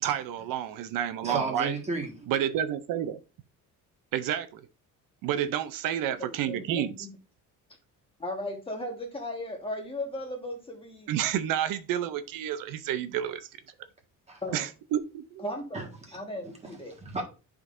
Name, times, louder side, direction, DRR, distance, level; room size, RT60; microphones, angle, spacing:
voice 1, 0.0-1.7 2.3-3.2 4.1-4.6 5.2-7.1 11.1-13.5 14.5-15.4, right 10 dB, 80° right, 0.6 m, -30 dB
voice 2, 1.2-2.3 14.3-14.4 15.7-16.2 16.4-16.7 17.0-17.2, right 3 dB, 20° right, 1.6 m, -34 dB
voice 3, 6.2-7.1 8.2-11.1 14.4-14.6 15.4-15.8 16.1-16.9, left 1 dB, 15° left, 1.4 m, -36 dB
10.5 x 3.8 x 2.5 m
cardioid pair, 145°, 33 cm